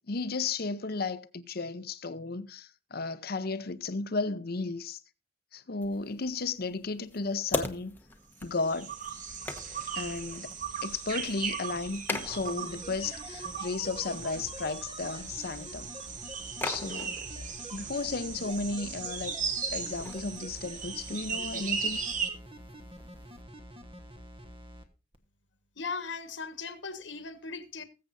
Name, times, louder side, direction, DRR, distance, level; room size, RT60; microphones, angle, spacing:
voice 1, 0.1-5.0 5.5-7.9 8.4-8.9 10.0-10.5 10.8-15.9 16.6-17.2 17.7-19.4 19.7-22.0, left 3 dB, 55° left, 0.8 m, -34 dB
sound 1, 5.8-23.4, left 2 dB, 10° left, 1.0 m, -43 dB
sound 2, 8.5-22.3, right 6 dB, 45° right, 1.5 m, -37 dB
sound 3, 12.3-24.8 25.1-25.2, equal, 30° right, 1.3 m, -47 dB
voice 2, 25.8-27.8, left 4 dB, 80° left, 1.4 m, -38 dB
20.5 x 7.6 x 2.7 m
head